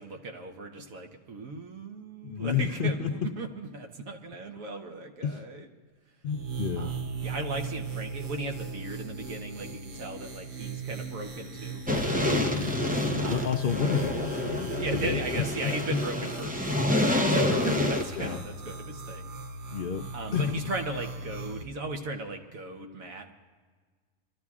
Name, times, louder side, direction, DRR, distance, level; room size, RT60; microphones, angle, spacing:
voice 1, 0.0-5.7 6.8-7.0 7.2-11.9 13.2-13.4 14.8-16.7 17.3-19.3 20.1-23.3, right 2 dB, 85° right, 4 dB, 1.4 m, -37 dB
voice 2, 2.2-3.1 5.2-5.4 6.2-6.9 12.4-12.8 13.1-15.7 18.1-18.4 19.7-20.0 20.3-20.6, left 7 dB, 60° left, 4 dB, 0.5 m, -31 dB
sound 1, 6.3-21.6, right 4 dB, 70° right, 1.2 m, -39 dB
sound 2, 11.9-18.4, left 1 dB, 10° right, 0.5 m, -28 dB
25.0 x 13.5 x 2.4 m, 1.5 s
omnidirectional pair, 1.4 m